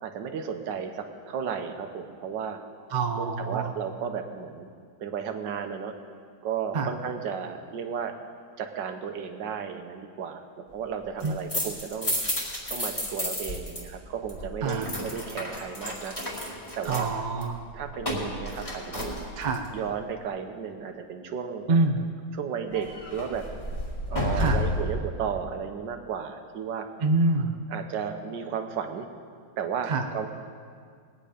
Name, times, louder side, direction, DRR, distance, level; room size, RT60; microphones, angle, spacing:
voice 1, 0.0-2.6 3.2-4.7 5.0-5.9 6.4-8.1 8.6-10.4 10.7-12.2 12.7-16.1 16.8-17.1 17.7-19.1 19.7-21.9 22.3-23.4 24.1-26.9 27.7-29.1 29.6-30.3, right 7 dB, 75° right, 6 dB, 1.6 m, -34 dB
voice 2, 2.9-3.7 6.7-6.9 11.2-11.3 14.6-14.9 16.9-17.6 19.4-19.7 21.7-22.1 24.4-24.6 27.0-27.5 29.9-30.0, right 3 dB, 45° right, 5 dB, 0.6 m, -26 dB
sound 1, 11.0-13.8 14.1-19.7 22.7-24.9, left 1 dB, 20° left, 2.2 m, -32 dB
20.0 x 8.9 x 5.0 m, 2.1 s
omnidirectional pair, 2.0 m